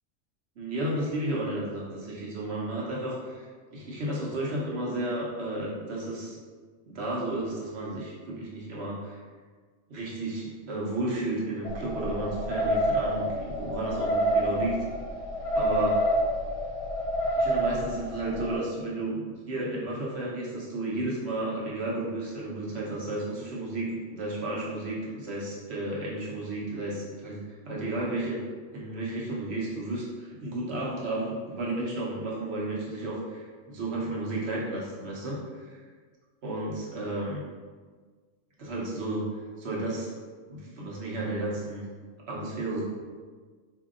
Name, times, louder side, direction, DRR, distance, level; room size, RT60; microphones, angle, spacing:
voice 1, 0.6-6.4 6.9-9.2 9.9-14.8 15.5-16.0 17.3-28.4 28.7-35.8 36.4-37.4 38.6-39.3 39.6-40.1 40.5-41.8 42.3-42.8, right 2 dB, 65° right, -5 dB, 1.1 m, -33 dB
sound 1, 11.6-18.6, equal, 70° left, 0.9 m, -28 dB
4.3 x 2.7 x 2.5 m, 1.5 s
omnidirectional pair, 1.2 m